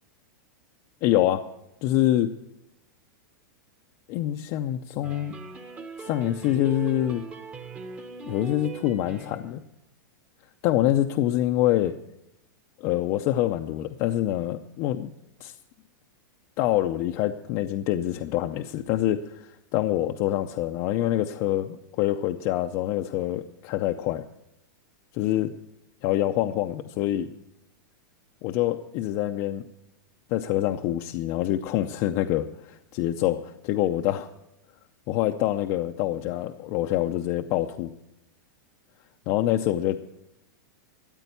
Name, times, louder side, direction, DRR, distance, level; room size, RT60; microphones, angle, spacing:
voice 1, 1.0-1.4 1.8-2.3 4.1-5.3 6.0-7.2 8.2-9.6 10.6-11.9 12.8-15.1 15.4-15.5 16.6-24.2 25.1-25.5 26.0-27.3 28.4-29.6 30.3-34.3 35.1-37.9 39.3-40.0, left 13 dB, 35° left, 5 dB, 0.5 m, -25 dB
sound 1, 5.0-9.6, right 3 dB, 15° right, 0.9 m, -40 dB
13.5 x 8.9 x 6.9 m, 0.85 s
supercardioid pair, 165°, 10 cm